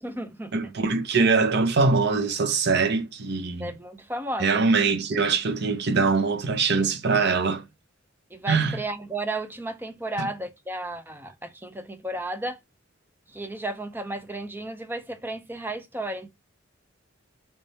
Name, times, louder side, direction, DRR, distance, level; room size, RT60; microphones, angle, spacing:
voice 1, 0.0-0.7 3.5-4.6 8.3-12.6 13.3-16.3, right 1 dB, 10° right, 0.6 m, -33 dB
voice 2, 0.5-3.7 4.4-7.6 8.5-8.8 10.2-10.3, right 4 dB, 55° right, 0.8 m, -23 dB
3.4 x 3.3 x 4.1 m
head